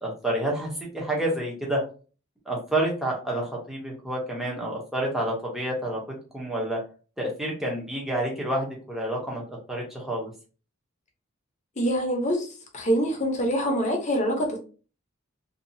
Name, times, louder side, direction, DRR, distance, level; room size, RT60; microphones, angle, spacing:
voice 1, 0.0-1.9 2.5-6.0 6.3-6.8 7.2-10.3, right 1 dB, ahead, 0.7 m, -29 dB
voice 2, 11.8-14.6, equal, 35° left, 0.7 m, -25 dB
2.7 x 2.3 x 2.6 m
head